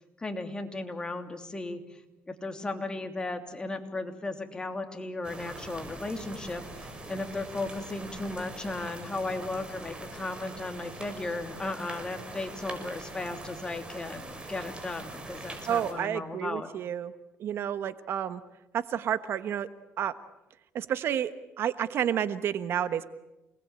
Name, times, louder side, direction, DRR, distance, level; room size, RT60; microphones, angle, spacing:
voice 1, 0.2-1.8 2.3-16.7, left 2 dB, 20° left, 5 dB, 3.1 m, -35 dB
sound 1, 5.2-15.9, right 2 dB, 20° right, 6.2 m, -43 dB
voice 2, 15.7-17.1 17.4-18.4 18.7-19.7 20.0-20.1 20.7-23.0, right 9 dB, 60° right, 13 dB, 1.2 m, -30 dB
28.5 x 20.0 x 8.9 m, 0.94 s
cardioid pair, 105°, 5 cm